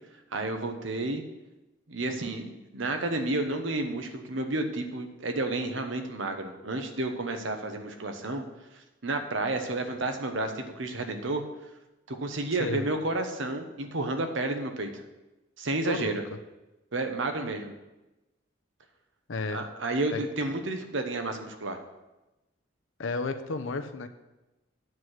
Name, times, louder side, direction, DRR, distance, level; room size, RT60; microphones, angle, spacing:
voice 1, 0.3-1.2 1.9-8.4 9.0-11.4 12.1-15.0 15.6-16.2 16.9-17.7 19.5-21.8, right 2 dB, 80° right, 6 dB, 1.1 m, -31 dB
voice 2, 12.5-12.8 15.8-16.2 19.3-19.7 20.1-20.2 23.0-24.1, left 3 dB, 85° left, 8 dB, 0.8 m, -32 dB
9.2 x 4.8 x 7.8 m, 1.0 s
head